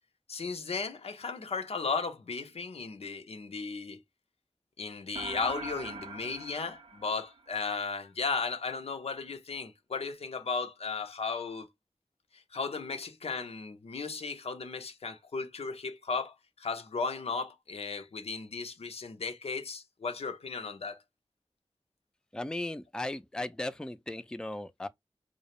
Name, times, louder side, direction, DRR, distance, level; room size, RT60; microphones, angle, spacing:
voice 1, 0.3-4.0 4.8-11.7 12.3-21.0, left 4 dB, 90° left, 0.5 m, -35 dB
sound 1, 5.1-7.8, right 4 dB, 70° right, 0.4 m, -43 dB
voice 2, 22.3-24.9, left 1 dB, 10° left, 0.3 m, -36 dB
2.4 x 2.0 x 2.8 m
wide cardioid pair, 45°, 10 cm